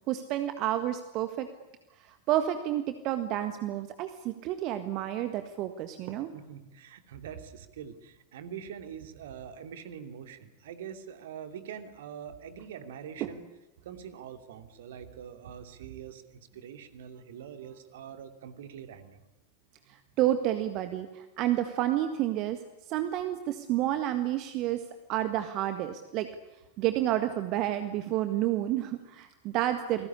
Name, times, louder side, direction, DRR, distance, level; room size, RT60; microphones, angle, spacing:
voice 1, 0.1-1.5 2.0-6.3 13.2-13.3 19.9-22.6 22.9-24.8 25.1-26.3 26.8-30.1, right 13 dB, 40° right, 9 dB, 1.7 m, -30 dB
voice 2, 6.3-13.4 13.8-19.2, right 8 dB, 55° right, 7 dB, 2.8 m, -44 dB
29.0 x 20.0 x 9.9 m, 1.0 s
figure-of-eight pair, 90°, 0 cm